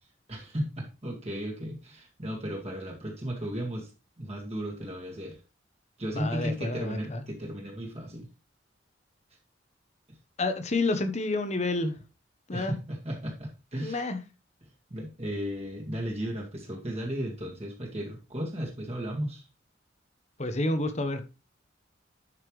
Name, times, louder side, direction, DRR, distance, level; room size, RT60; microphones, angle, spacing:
voice 1, 0.3-3.9 4.2-5.4 6.0-8.3 10.1-10.2 12.5-14.1 14.9-19.5, equal, 35° right, 2.2 m, -35 dB
voice 2, 6.1-7.2 10.4-12.0 12.5-12.7 13.8-14.2 20.4-21.2, left 2 dB, 40° left, 1.1 m, -29 dB
11.0 x 5.8 x 3.2 m
head